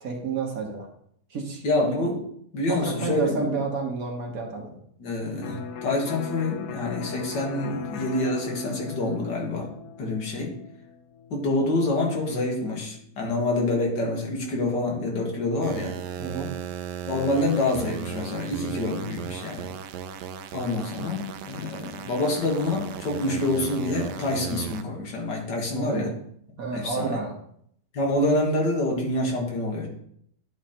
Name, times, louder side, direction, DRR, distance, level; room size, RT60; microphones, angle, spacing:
voice 1, 0.0-0.9 1.3-1.6 2.0-2.1 2.7-4.8 16.2-16.5 25.7-26.1 26.6-27.3, right 4 dB, 55° right, 1 dB, 1.7 m, -30 dB
voice 2, 1.6-2.2 2.5-3.5 5.0-9.7 10.0-10.5 11.3-15.9 17.1-19.7 20.5-26.1 26.7-27.2 27.9-29.9, left 2 dB, 90° left, 0 dB, 2.3 m, -27 dB
Electric guitar, 5.4-13.1, left 6 dB, 75° left, 1.3 m, -39 dB
sound 1, 15.6-24.8, right 9 dB, 80° right, 1.2 m, -37 dB
10.5 x 3.8 x 4.4 m, 0.68 s
omnidirectional pair, 1.8 m